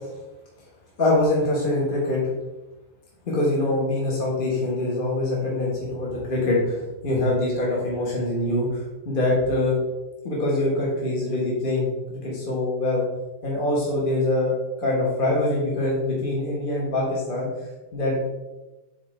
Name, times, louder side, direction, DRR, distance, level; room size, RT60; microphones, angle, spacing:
voice 1, 1.0-2.2 3.2-9.8 10.2-13.0 13.4-14.5 14.8-17.5 17.9-18.2, left 2 dB, 40° left, -5 dB, 1.6 m, -24 dB
7.8 x 3.9 x 3.3 m, 1.1 s
omnidirectional pair, 1.4 m